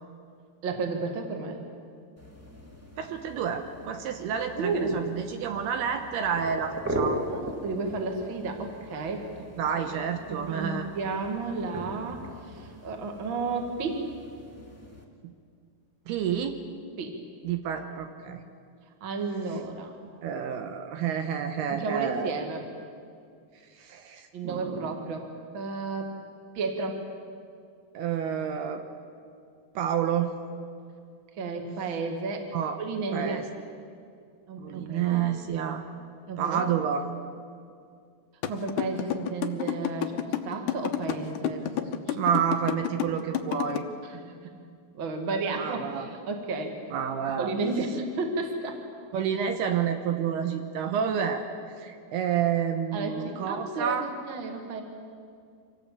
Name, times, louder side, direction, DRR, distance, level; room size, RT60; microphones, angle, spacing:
voice 1, 0.6-1.6 4.5-5.0 7.3-9.5 9.9-10.0 10.3-14.1 17.0-17.2 19.0-19.9 21.8-22.7 24.3-26.1 26.5-27.0 31.3-32.5 32.8-33.4 34.5-35.2 36.3-36.6 38.5-42.4 44.0-44.5 44.9-46.8 47.4-48.8 52.9-54.0 54.3-54.8, right 3 dB, 40° right, 4 dB, 2.2 m, -32 dB
sound 1, 2.2-15.0, right 1 dB, 10° right, 0.6 m, -39 dB
voice 2, 3.0-7.6 9.6-10.9 15.2-15.3 16.1-16.6 17.4-18.4 20.2-22.3 23.7-25.0 27.9-28.8 29.8-30.3 32.5-32.8 33.1-33.4 34.6-35.8 36.4-37.0 42.2-43.9 45.5-46.1 46.9-47.5 49.1-51.5 51.8-54.1, right 8 dB, 75° right, 6 dB, 2.9 m, -29 dB
sound 2, 38.4-43.8, left 12 dB, 75° left, 2.0 m, -29 dB
25.5 x 17.5 x 8.4 m, 2.3 s
omnidirectional pair, 4.8 m